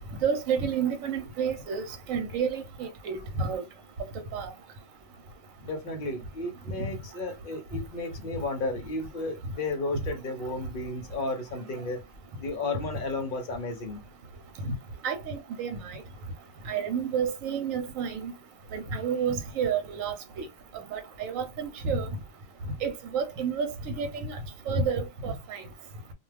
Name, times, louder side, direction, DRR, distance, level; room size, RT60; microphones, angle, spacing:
voice 1, 0.2-3.6 4.3-4.5 14.6-14.7 15.0-16.0 16.7-18.3 18.7-20.5 20.9-22.1 22.8-24.4 24.7-25.6, right 6 dB, 80° right, 1.0 m, -30 dB
voice 2, 5.6-12.0 12.4-14.0, left 2 dB, 50° left, 0.7 m, -33 dB
2.3 x 2.3 x 3.2 m
omnidirectional pair, 1.4 m